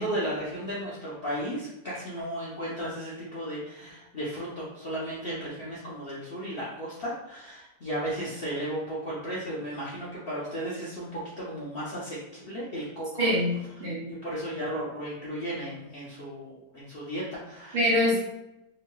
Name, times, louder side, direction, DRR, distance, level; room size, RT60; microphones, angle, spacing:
voice 1, 0.0-13.3 14.1-17.8 18.1-18.2, equal, 70° left, -8 dB, 0.5 m, -34 dB
voice 2, 13.2-14.1 17.7-18.2, left 1 dB, 70° right, -5 dB, 0.5 m, -25 dB
3.0 x 2.8 x 2.2 m, 0.90 s
omnidirectional pair, 1.9 m